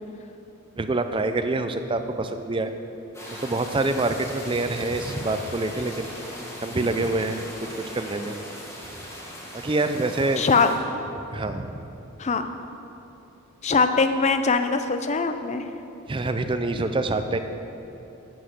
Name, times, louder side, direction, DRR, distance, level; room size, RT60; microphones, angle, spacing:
voice 1, 0.8-2.7 3.3-6.1 6.6-8.3 9.6-10.4 11.3-11.7 16.1-17.4, right 2 dB, 25° right, 8 dB, 0.4 m, -26 dB
sound 1, 3.1-10.8, left 1 dB, 10° left, 1.3 m, -39 dB
voice 2, 10.4-10.7 12.2-12.5 13.6-15.6, left 4 dB, 30° left, 8 dB, 0.5 m, -22 dB
8.1 x 8.0 x 6.4 m, 2.9 s
head